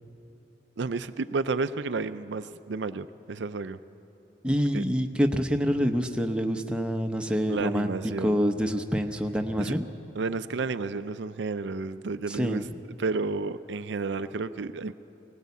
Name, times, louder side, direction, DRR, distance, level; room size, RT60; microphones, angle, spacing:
voice 1, 0.8-3.8 4.7-4.8 7.5-8.4 9.6-9.8 10.2-12.7 13.0-14.9, right 4 dB, 70° right, 12 dB, 0.5 m, -31 dB
voice 2, 4.4-7.9 8.2-9.8 12.3-12.6, equal, 5° right, 4 dB, 0.8 m, -26 dB
18.5 x 18.5 x 8.3 m, 3.0 s
head